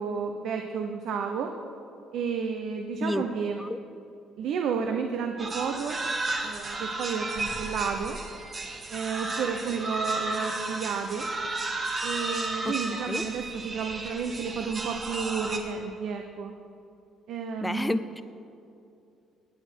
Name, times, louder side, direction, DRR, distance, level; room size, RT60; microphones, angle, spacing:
voice 1, 0.0-1.5 2.1-3.6 4.4-6.0 6.4-8.2 8.9-11.3 12.0-16.5 17.3-18.0, right 6 dB, 70° right, 4 dB, 0.8 m, -31 dB
sound 1, 5.4-15.6, right 2 dB, 30° right, 1.4 m, -33 dB
voice 2, 12.6-13.2 17.6-18.2, left 2 dB, 10° left, 13 dB, 0.5 m, -30 dB
18.0 x 8.9 x 4.6 m, 2.6 s
cardioid pair, 110°, 0 cm